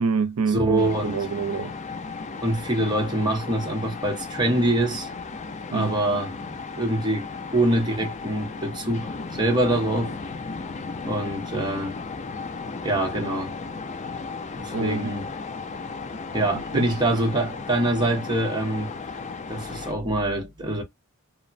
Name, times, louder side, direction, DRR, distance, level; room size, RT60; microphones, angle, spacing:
voice 1, 0.0-1.7 5.7-6.2 13.2-13.3 14.7-15.2 16.5-16.9, right 5 dB, 80° right, 0.5 m, -27 dB
voice 2, 0.5-1.2 2.4-5.1 5.7-6.3 6.7-10.1 11.1-12.0 12.8-13.5 14.6-15.3 16.3-18.9 19.5-20.8, right 1 dB, 20° right, 0.8 m, -25 dB
sound 1, 0.8-19.9, left 4 dB, 30° left, 0.3 m, -35 dB
3.0 x 2.0 x 2.5 m
head